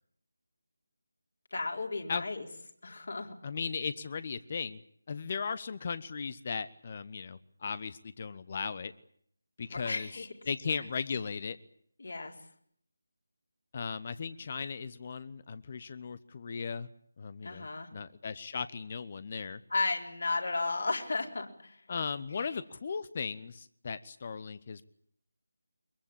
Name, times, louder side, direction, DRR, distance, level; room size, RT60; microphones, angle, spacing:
voice 1, 1.5-2.5 2.8-3.4 9.7-10.3 12.0-12.3 17.4-17.9 19.7-21.8 22.4-22.6, left 3 dB, 50° left, 2 dB, 4.3 m, -34 dB
voice 2, 3.4-4.8 5.1-8.9 9.6-10.1 10.5-11.6 13.7-16.9 17.2-19.6 21.9-24.8, left 5 dB, 30° left, 15 dB, 0.9 m, -37 dB
23.0 x 22.5 x 8.7 m, 0.65 s
figure-of-eight pair, 160°, 0 cm